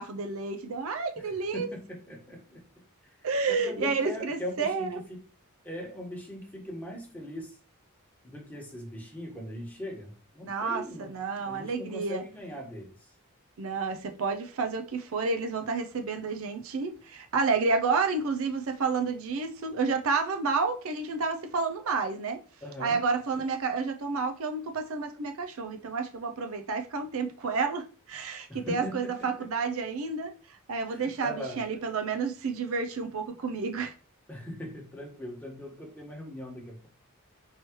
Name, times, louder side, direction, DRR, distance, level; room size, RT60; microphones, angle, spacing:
voice 1, 0.0-1.7 3.2-5.0 10.4-12.2 13.6-22.4 22.8-30.3 30.7-33.9, right 4 dB, 60° right, 0.5 m, -30 dB
voice 2, 1.2-2.6 3.0-3.1 3.5-5.2 5.6-7.6 8.2-13.1 22.6-23.0 28.5-29.5 30.9-31.6 34.3-36.9, equal, 10° left, 1.2 m, -40 dB
4.6 x 3.0 x 3.0 m
head